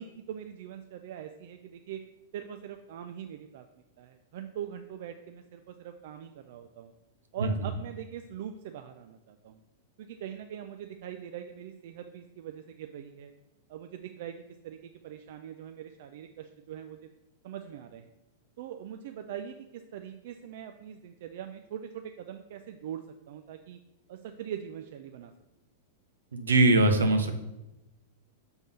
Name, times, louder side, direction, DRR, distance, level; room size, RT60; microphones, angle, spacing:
voice 1, 0.0-2.0 2.3-3.6 4.0-6.9 7.3-9.6 10.0-13.3 13.7-17.1 17.4-18.1 18.6-23.8 24.1-25.3, right 9 dB, 60° right, 7 dB, 0.4 m, -42 dB
voice 2, 26.3-27.4, right 2 dB, 80° right, 6 dB, 0.8 m, -22 dB
6.2 x 3.5 x 5.4 m, 0.97 s
hypercardioid pair, 100°, 0 cm